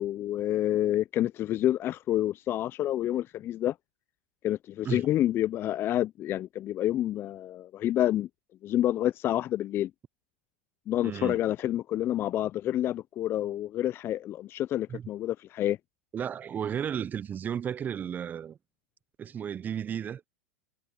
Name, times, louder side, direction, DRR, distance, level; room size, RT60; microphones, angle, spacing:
voice 1, 0.0-3.7 4.4-8.3 8.6-9.9 10.9-15.8, left 12 dB, 35° left, 0.4 m, -28 dB
voice 2, 11.0-11.4 14.9-15.1 16.1-18.6 19.2-20.2, right 8 dB, 25° right, 0.5 m, -33 dB
hypercardioid pair, 105°, 7 cm